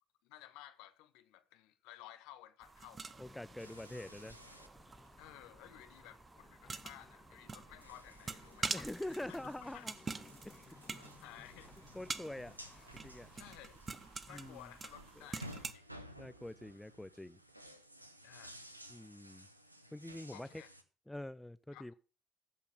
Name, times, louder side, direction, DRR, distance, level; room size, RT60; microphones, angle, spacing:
voice 1, 0.2-3.1 5.2-9.9 11.2-11.7 13.3-13.8 14.3-15.8 18.2-18.6 20.3-20.7 21.7-21.9, left 14 dB, 65° left, 0.9 m, -55 dB
sound 1, 2.6-15.7, right 4 dB, 30° right, 0.8 m, -47 dB
sound 2, 3.0-13.5, left 4 dB, 25° left, 0.9 m, -61 dB
voice 2, 3.2-4.4 8.7-9.9 10.4-11.1 11.9-12.6 12.9-13.3 14.3-14.7 16.2-17.4 18.9-19.5 19.9-20.6 21.1-21.9, left 1 dB, 5° left, 0.5 m, -45 dB
sound 3, 3.6-4.7 5.0-5.1 7.4-20.8, equal, 90° right, 0.7 m, -56 dB
14.5 x 5.7 x 5.8 m
figure-of-eight pair, 50°, 0 cm